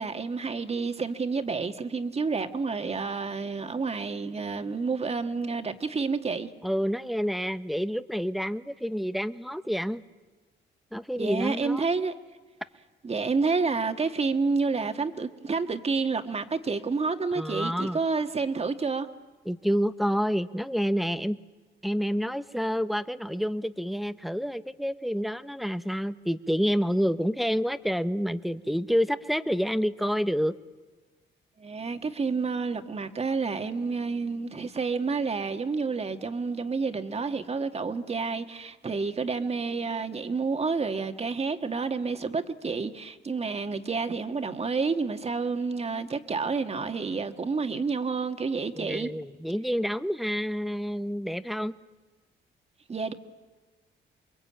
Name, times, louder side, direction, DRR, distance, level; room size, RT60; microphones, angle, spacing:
voice 1, 0.0-6.5 11.2-12.1 13.0-19.1 31.6-49.1 52.9-53.1, right 4 dB, 30° right, 1.8 m, -29 dB
voice 2, 6.6-10.0 10.9-11.9 17.4-18.0 19.5-21.4 21.8-30.6 48.8-51.7, equal, ahead, 0.9 m, -28 dB
28.0 x 22.5 x 8.8 m
cardioid pair, 90°, 20 cm